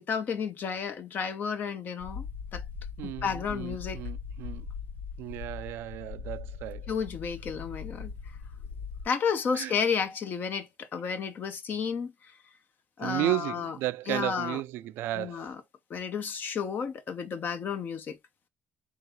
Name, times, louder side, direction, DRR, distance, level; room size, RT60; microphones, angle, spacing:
voice 1, 0.0-2.3 2.5-2.6 3.0-4.0 6.9-8.1 9.0-12.1 13.0-13.8 14.1-14.6 15.1-15.6 15.9-18.2, left 6 dB, 55° left, 0.9 m, -32 dB
sound 1, 2.0-9.0, left 5 dB, 80° left, 0.8 m, -40 dB
voice 2, 3.0-4.6 5.2-6.8 9.5-9.8 13.0-15.5, right 15 dB, 75° right, 0.3 m, -33 dB
3.5 x 2.9 x 3.7 m
supercardioid pair, 75°, 4 cm